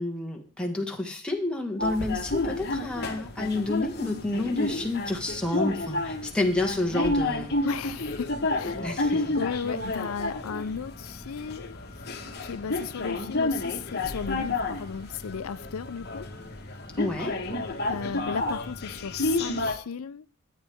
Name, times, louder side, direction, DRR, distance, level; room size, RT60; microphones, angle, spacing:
voice 1, 0.0-7.5 8.6-9.3 17.0-17.4, left 2 dB, 5° left, 1.7 m, -29 dB
sound 1, 1.8-19.7, left 2 dB, 50° left, 1.4 m, -30 dB
voice 2, 7.6-8.9 9.3-12.1 12.4-16.3 17.9-20.3, left 6 dB, 85° left, 0.5 m, -35 dB
13.0 x 9.5 x 3.6 m
head